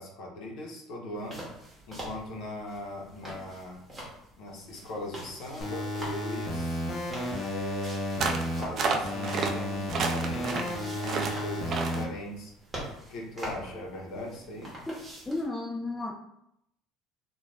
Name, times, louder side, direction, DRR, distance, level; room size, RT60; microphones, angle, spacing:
voice 1, 0.0-1.5 1.9-3.8 4.4-6.8 7.3-12.5 13.1-14.7, left 1 dB, 70° left, -2 dB, 0.7 m, -40 dB
sound 1, 1.2-15.5, equal, 20° right, 1.0 m, -45 dB
sound 2, 5.6-8.6 9.0-12.0, left 1 dB, 40° left, 0.8 m, -33 dB
sound 3, 8.2-8.5 8.8-9.5 9.9-10.7 11.0-11.3 11.7-12.0, right 4 dB, 50° right, 0.4 m, -29 dB
voice 2, 15.3-16.1, left 2 dB, 15° left, -1 dB, 0.4 m, -33 dB
2.5 x 2.2 x 3.2 m, 0.77 s
supercardioid pair, 105°, 0 cm